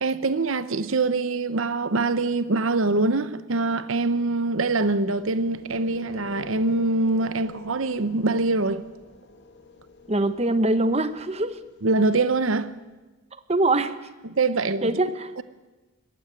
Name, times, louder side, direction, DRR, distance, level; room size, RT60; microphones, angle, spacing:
voice 1, 0.0-8.8 11.8-12.7 14.2-15.0 15.4-15.5, right 3 dB, 70° right, 0.9 m, -24 dB
sound 1, 4.6-12.7, left 2 dB, 55° left, 2.1 m, -47 dB
voice 2, 10.1-11.6 13.3-13.9 14.8-15.3, right 2 dB, 30° right, 1.1 m, -23 dB
20.5 x 16.0 x 9.7 m
head